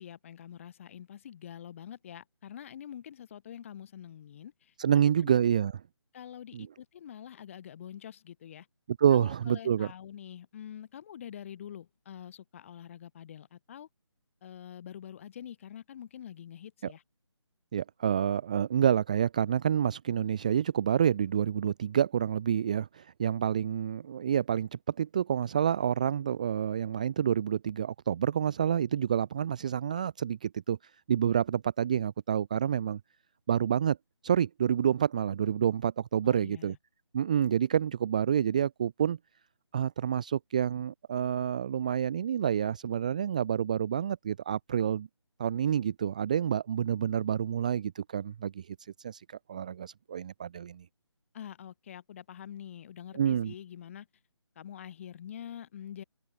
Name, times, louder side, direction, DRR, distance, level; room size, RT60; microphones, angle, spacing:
voice 1, 0.0-4.7 5.2-5.3 6.1-8.7 9.1-13.9 14.4-17.0 36.2-36.8 51.3-54.1 54.6-56.0, left 9 dB, 25° left, 1.9 m, -45 dB
voice 2, 4.8-5.7 6.5-6.7 9.0-9.9 16.8-16.9 17.7-30.8 31.1-33.0 33.5-34.0 34.2-36.8 37.1-39.2 39.7-45.1 45.4-50.8 53.1-53.5, right 9 dB, 15° right, 0.4 m, -28 dB
open air
figure-of-eight pair, 150°, 15 cm